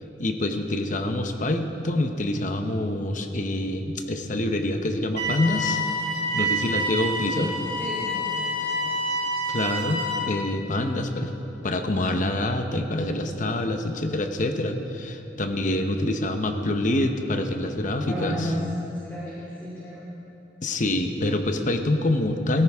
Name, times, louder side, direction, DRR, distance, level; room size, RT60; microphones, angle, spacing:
voice 1, 0.2-5.8 6.3-7.5 9.5-11.3 11.6-18.4 20.6-22.6, left 1 dB, 45° left, 6 dB, 0.9 m, -26 dB
sound 1, 5.2-10.2, equal, 70° right, 3.8 m, -27 dB
voice 2, 7.8-8.9 18.1-18.6 19.0-20.0, equal, 10° left, -9 dB, 2.7 m, -33 dB
17.5 x 15.0 x 3.6 m, 2.9 s
head